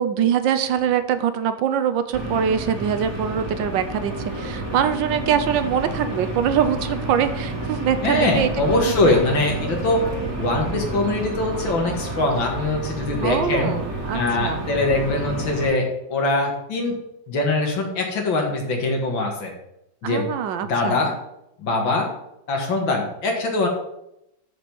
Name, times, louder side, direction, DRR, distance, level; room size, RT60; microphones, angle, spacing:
voice 1, 0.0-8.5 8.8-9.2 13.2-14.7 20.0-21.0, right 8 dB, 70° right, 10 dB, 1.4 m, -23 dB
sound 1, 2.1-15.7, right 2 dB, 45° right, 2.7 m, -30 dB
voice 2, 8.0-10.0 10.4-13.7 14.1-17.0 17.3-19.5 20.0-20.3 20.6-21.1 21.6-22.1 22.5-23.7, left 2 dB, 70° left, 1 dB, 2.5 m, -22 dB
6.9 x 6.3 x 7.0 m, 0.83 s
omnidirectional pair, 2.2 m